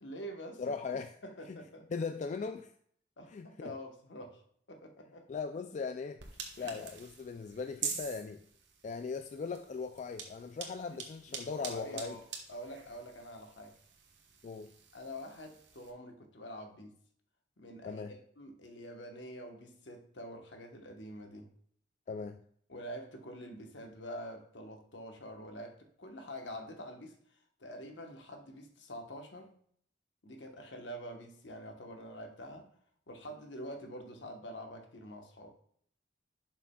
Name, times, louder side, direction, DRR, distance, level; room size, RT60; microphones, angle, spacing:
voice 1, 0.0-1.9 3.2-4.4 4.7-5.3 6.6-6.7 10.9-11.0 11.3-12.2 12.5-13.8 14.9-16.9 17.6-21.5 22.7-27.2 27.6-29.5 30.2-32.7 33.1-35.5, equal, 70° left, 1.2 m, -46 dB
voice 2, 0.6-1.1 1.5-1.6 1.9-2.7 3.3-3.7 5.3-6.2 6.6-8.4 8.8-12.2 14.4-14.7 17.8-18.2 22.1-22.4, left 5 dB, 40° left, 0.3 m, -39 dB
sound 1, 6.2-15.9, right 6 dB, 65° right, 1.3 m, -46 dB
11.0 x 6.0 x 2.3 m
head